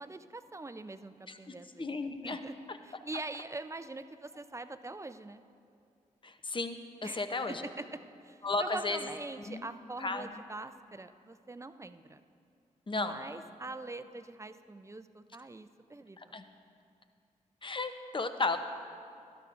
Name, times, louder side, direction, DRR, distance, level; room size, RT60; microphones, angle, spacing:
voice 1, 0.0-1.9 2.2-2.6 2.8-5.4 7.0-12.2 12.9-16.4, right 2 dB, 20° right, 11 dB, 0.5 m, -43 dB
voice 2, 1.3-2.4 6.2-7.7 8.4-9.0 9.5-9.6 10.0-10.4 12.9-13.2 16.2-16.4 17.6-18.6, left 3 dB, 35° left, 8 dB, 0.8 m, -34 dB
12.5 x 12.0 x 2.5 m, 2.4 s
supercardioid pair, 40°, 14 cm